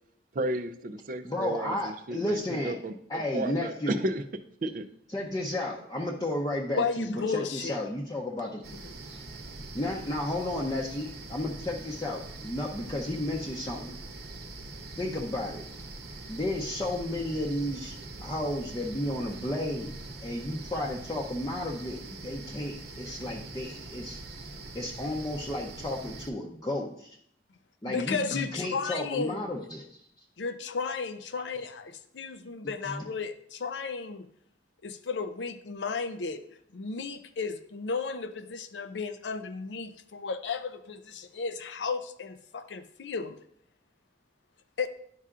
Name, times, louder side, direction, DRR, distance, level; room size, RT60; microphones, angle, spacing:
voice 1, 0.3-4.2 4.6-4.9, right 1 dB, 50° right, 8 dB, 0.5 m, -33 dB
voice 2, 1.2-2.7 3.1-4.0 5.1-8.6 9.0-9.2 9.7-14.0 15.0-15.6 16.3-17.9 18.2-19.9 20.2-24.2 24.7-27.2 27.8-30.0, left 1 dB, 20° left, -3 dB, 0.6 m, -33 dB
voice 3, 6.8-7.8 8.8-8.9 27.8-29.7 30.4-34.3 34.8-36.4 36.7-43.4 44.8-44.9, left 5 dB, 80° left, 9 dB, 0.5 m, -34 dB
sound 1, 8.6-26.3, right 2 dB, 65° right, 0.8 m, -43 dB
11.0 x 5.6 x 2.5 m, 0.69 s
head